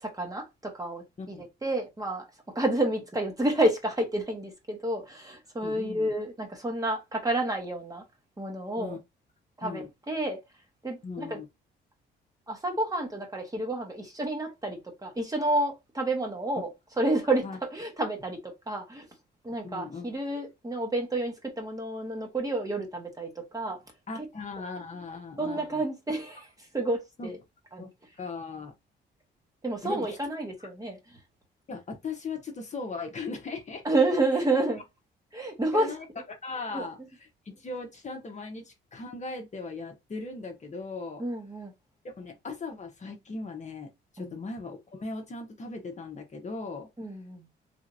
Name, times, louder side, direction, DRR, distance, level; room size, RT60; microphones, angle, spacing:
voice 1, 0.0-8.0 8.4-9.0 9.6-10.4 10.8-11.4 12.5-16.7 17.0-19.1 19.4-23.8 25.4-26.5 26.7-27.4 27.7-27.9 29.6-31.0 33.8-34.8 35.3-35.9 36.7-36.9 41.2-41.7 44.2-44.3 47.0-47.5, right 2 dB, 20° right, 1.3 m, -30 dB
voice 2, 5.6-6.1 8.8-9.0 9.6-9.9 11.0-11.5 17.4-17.6 19.6-20.1 24.1-25.8 27.2-27.3 27.8-27.9 28.2-28.7 29.8-30.2 30.6-30.7 31.7-33.8 35.7-36.1 36.4-41.2 42.2-43.9 44.1-46.9, left 3 dB, 35° left, 1.0 m, -38 dB
3.4 x 2.8 x 2.6 m
cardioid pair, 90°, 20 cm